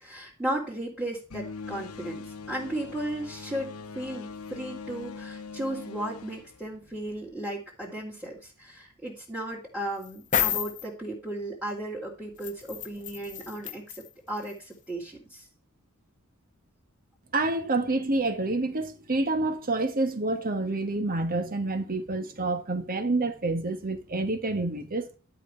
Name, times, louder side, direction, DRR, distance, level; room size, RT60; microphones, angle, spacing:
voice 1, 0.0-15.5, right 1 dB, 5° right, 2.9 m, -35 dB
sound 1, 1.3-7.3, left 4 dB, 80° left, 1.1 m, -41 dB
sound 2, 10.0-10.8 12.4-14.1 14.5-14.6, left 9 dB, 35° left, 1.1 m, -30 dB
voice 2, 17.3-25.0, right 2 dB, 40° right, 1.6 m, -28 dB
11.5 x 5.4 x 4.6 m
head